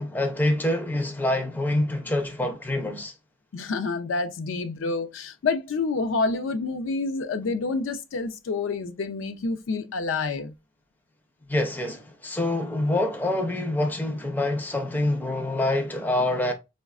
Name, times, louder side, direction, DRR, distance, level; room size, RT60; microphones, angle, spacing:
voice 1, 0.0-3.1 11.5-16.5, left 1 dB, 10° left, 0.5 m, -26 dB
voice 2, 3.5-10.5, left 3 dB, 65° left, 0.4 m, -28 dB
4.7 x 2.1 x 2.3 m
head